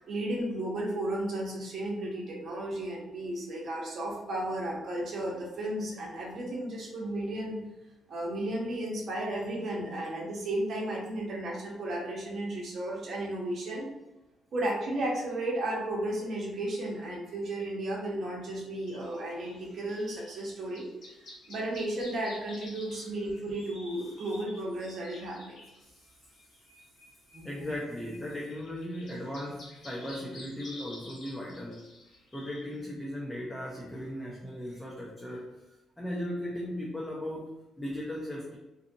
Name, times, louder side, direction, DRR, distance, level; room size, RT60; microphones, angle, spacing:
voice 1, 0.0-7.6 8.1-13.9 14.5-20.9 21.5-25.6 27.3-27.7, right 1 dB, 60° right, -3 dB, 0.8 m, -34 dB
sound 1, 18.9-32.8, left 2 dB, 70° left, 0.8 m, -51 dB
voice 2, 27.4-31.8 32.3-38.6, left 1 dB, 10° left, -4 dB, 0.6 m, -37 dB
2.6 x 2.4 x 2.6 m, 1.0 s
cardioid pair, 90°, 0 cm